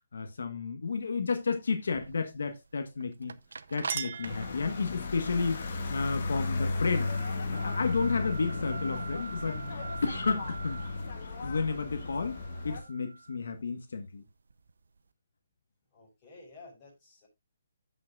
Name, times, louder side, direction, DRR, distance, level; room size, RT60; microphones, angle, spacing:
voice 1, 0.1-3.3 3.7-5.6 5.9-7.1 7.5-10.8 11.4-12.4 12.6-14.2, left 4 dB, 75° left, 1.3 m, -32 dB
sound 1, 0.9-15.0, right 4 dB, 85° right, 0.7 m, -46 dB
Chink clink, 3.3-5.2, right 8 dB, 35° right, 0.8 m, -40 dB
sound 2, 4.2-12.8, left 3 dB, 50° left, 1.7 m, -35 dB
voice 2, 15.9-17.3, left 3 dB, 20° left, 5.8 m, -52 dB
15.5 x 5.7 x 2.4 m
hypercardioid pair, 165°, 0 cm